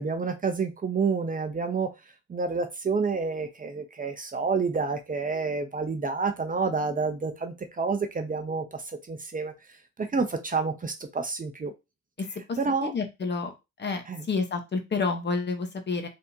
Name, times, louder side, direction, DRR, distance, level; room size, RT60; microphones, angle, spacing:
voice 1, 0.0-1.9 2.3-11.7 12.6-12.9 14.1-14.3, right 4 dB, 30° right, 0.7 m, -29 dB
voice 2, 12.5-13.5 13.8-14.0 14.3-16.1, left 4 dB, 35° left, 1.0 m, -29 dB
4.2 x 3.6 x 2.7 m
cardioid pair, 90°, 30 cm